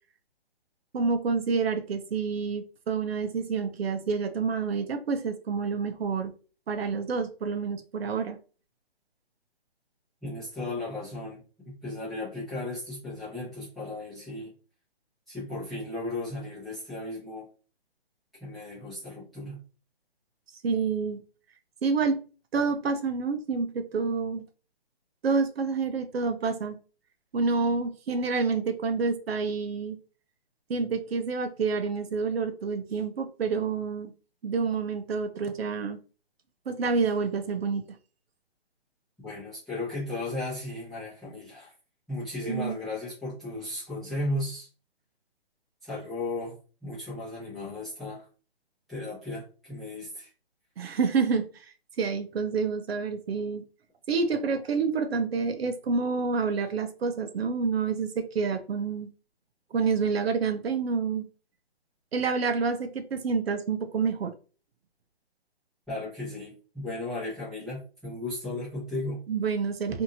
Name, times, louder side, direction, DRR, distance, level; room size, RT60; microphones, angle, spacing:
voice 1, 0.9-6.3 6.7-8.4 20.6-21.2 21.8-22.2 22.5-24.4 25.2-26.8 27.3-30.0 30.7-34.1 34.4-36.0 36.7-37.9 42.4-42.7 50.8-53.6 54.1-59.1 59.7-61.3 62.1-64.3 69.3-70.0, right 5 dB, 70° right, 7 dB, 0.6 m, -28 dB
voice 2, 10.2-14.5 15.3-17.5 18.4-19.6 39.2-41.7 42.1-44.7 45.8-48.3 48.9-50.3 65.9-69.2, left 2 dB, ahead, -13 dB, 0.7 m, -35 dB
2.8 x 2.6 x 2.6 m, 0.36 s
hypercardioid pair, 160°, 32 cm